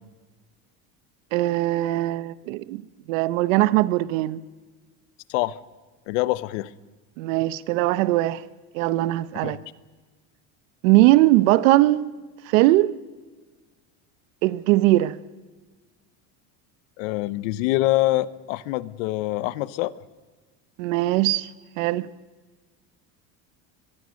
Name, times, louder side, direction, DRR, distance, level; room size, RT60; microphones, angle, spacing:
voice 1, 1.3-2.8 3.1-4.4 7.2-8.4 8.7-9.6 10.8-12.1 12.5-12.9 14.4-15.2 20.8-21.5 21.8-22.1, right 17 dB, 80° right, 1.1 m, -20 dB
voice 2, 6.1-6.7 9.4-9.6 17.0-19.9, left 17 dB, 75° left, 1.0 m, -25 dB
23.0 x 22.5 x 6.5 m
cardioid pair, 175°, 38 cm